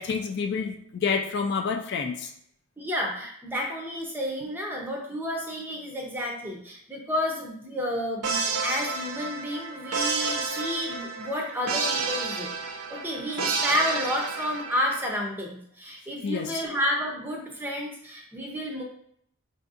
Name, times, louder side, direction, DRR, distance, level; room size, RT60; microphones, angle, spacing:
voice 1, 0.0-2.3 16.2-16.6, left 5 dB, 50° left, 3 dB, 0.3 m, -28 dB
voice 2, 2.8-12.5 12.9-18.8, equal, 10° right, -1 dB, 0.5 m, -31 dB
sound 1, 8.2-15.1, right 4 dB, 85° right, 0.4 m, -30 dB
4.5 x 2.6 x 2.4 m, 0.68 s
head